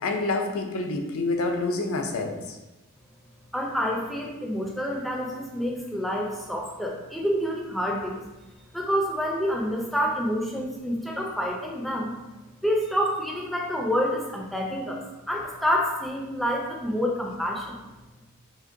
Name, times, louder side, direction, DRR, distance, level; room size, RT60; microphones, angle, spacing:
voice 1, 0.0-2.6, left 3 dB, 65° left, 4 dB, 0.5 m, -27 dB
voice 2, 3.5-8.2 8.7-12.1 12.6-17.8, equal, ahead, -1 dB, 0.4 m, -28 dB
5.0 x 2.1 x 2.6 m, 1.1 s
head